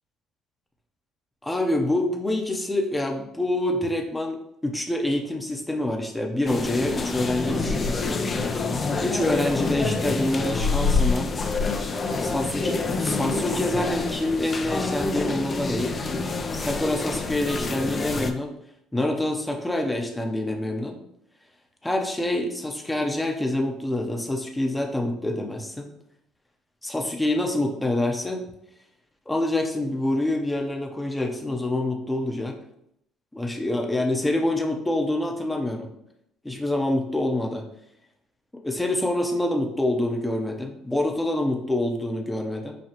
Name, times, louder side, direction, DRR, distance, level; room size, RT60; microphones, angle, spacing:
voice 1, 1.4-4.4 4.6-8.0 9.0-11.3 12.2-15.9 16.5-18.5 18.9-21.0 21.8-25.9 26.8-28.4 29.3-32.6 33.3-35.9 36.4-37.6 38.6-42.7, left 1 dB, 10° left, 3 dB, 0.8 m, -26 dB
sound 1, 6.5-18.3, left 4 dB, 35° left, 0.5 m, -27 dB
5.9 x 2.3 x 2.9 m, 0.78 s
hypercardioid pair, 65°, 0 cm